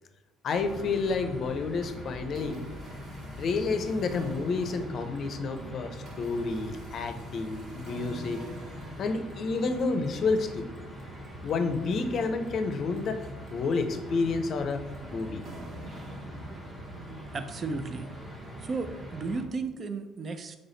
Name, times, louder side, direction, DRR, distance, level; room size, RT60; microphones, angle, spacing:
voice 1, 0.4-2.7 3.4-8.4 9.0-10.7 11.4-13.2 13.5-14.8 15.1-15.4, left 4 dB, 55° left, 8 dB, 0.5 m, -30 dB
sound 1, 0.5-19.4, equal, 20° right, 1.0 m, -42 dB
sound 2, 0.6-1.6 2.0-17.1, equal, 65° right, 1.3 m, -49 dB
voice 2, 17.1-18.1 18.6-20.6, right 4 dB, 45° right, 9 dB, 0.4 m, -34 dB
4.0 x 3.3 x 3.9 m, 1.1 s
supercardioid pair, 75°, 0 cm